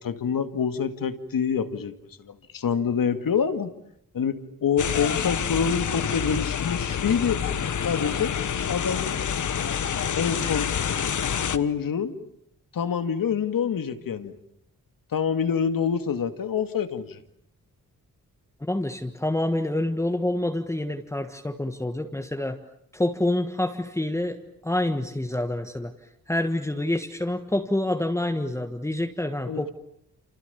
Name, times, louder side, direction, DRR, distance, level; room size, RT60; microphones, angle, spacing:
voice 1, 0.0-1.9 2.2-3.7 4.1-7.5 7.8-8.3 8.7-9.2 10.1-10.7 11.5-12.2 12.7-14.3 15.1-17.2 29.5-29.7, left 7 dB, 85° left, 9 dB, 2.2 m, -26 dB
sound 1, 4.8-11.6, left 8 dB, 60° left, 1.2 m, -27 dB
voice 2, 18.6-22.6 22.9-24.4 24.6-25.9 26.3-29.7, left 1 dB, 10° left, 5 dB, 1.5 m, -27 dB
29.5 x 28.0 x 7.1 m, 0.74 s
wide cardioid pair, 170°, 33 cm